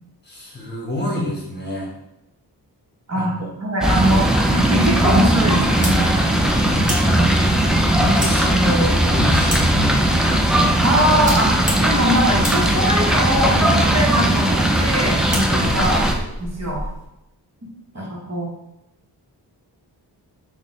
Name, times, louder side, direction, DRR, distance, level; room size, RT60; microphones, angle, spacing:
voice 1, 0.2-1.9 3.2-3.5 6.6-10.4 15.5-15.9 17.9-18.1, left 1 dB, 25° left, -3 dB, 1.3 m, -27 dB
voice 2, 3.1-6.0 7.9-8.3 10.8-11.5 11.8-16.0 16.4-16.8 17.9-18.5, right 1 dB, 40° right, -2 dB, 1.2 m, -22 dB
sound 1, 3.8-16.1, right 1 dB, ahead, 0.4 m, -18 dB
sound 2, 5.6-17.0, equal, 20° right, 1.4 m, -33 dB
4.0 x 2.4 x 3.6 m, 0.87 s
cardioid pair, 55°, 42 cm